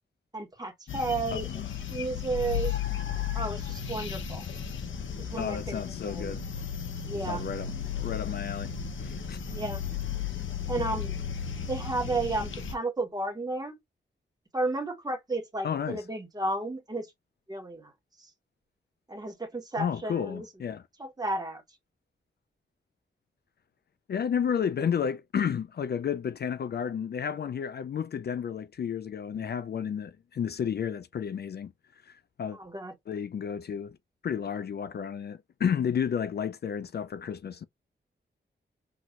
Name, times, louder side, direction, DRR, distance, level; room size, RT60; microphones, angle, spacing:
voice 1, 0.3-2.8 3.3-4.5 5.2-6.3 7.1-7.4 9.4-9.8 10.7-11.1 11.7-13.8 14.5-17.1 17.5-17.9 19.1-20.5 21.0-21.6 32.5-32.9, right 2 dB, 20° right, 1.6 m, -33 dB
sound 1, 0.9-12.7, left 7 dB, 80° left, 0.8 m, -34 dB
voice 2, 1.3-1.7 5.4-6.4 7.1-8.7 9.0-9.4 15.6-16.0 19.8-20.8 24.1-31.7 32.1-32.6 33.1-34.0 34.2-37.6, left 7 dB, 55° left, 0.4 m, -32 dB
5.9 x 3.0 x 2.5 m
wide cardioid pair, 155°, 20 cm